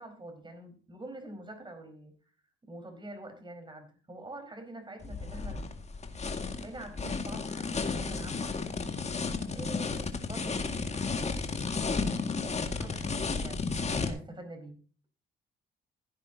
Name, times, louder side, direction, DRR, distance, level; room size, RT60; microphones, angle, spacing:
voice 1, 0.0-2.1 2.6-5.6 6.3-8.6 9.5-11.9 12.4-14.8, right 1 dB, 25° right, 6 dB, 4.5 m, -46 dB
sound 1, 5.0-14.1, left 4 dB, 35° left, 2.0 m, -33 dB
15.5 x 9.8 x 2.8 m, 0.38 s
cardioid pair, 90°, 20 cm